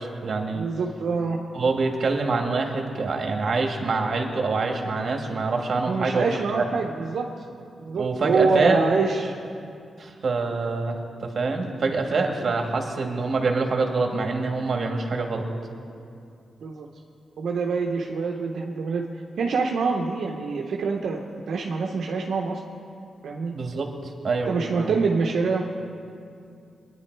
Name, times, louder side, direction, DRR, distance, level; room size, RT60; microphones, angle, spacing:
voice 1, 0.0-0.7 1.5-6.6 8.0-8.8 10.0-15.4 23.5-24.9, right 3 dB, 50° right, 2 dB, 2.0 m, -25 dB
voice 2, 0.5-1.4 5.8-7.3 7.8-9.4 16.6-16.9 17.4-19.1 19.4-21.2 21.5-22.6 23.2-23.5 24.5-25.6, right 4 dB, 75° right, 0 dB, 1.0 m, -25 dB
23.0 x 10.5 x 4.7 m, 2.5 s
cardioid pair, 105°, 0 cm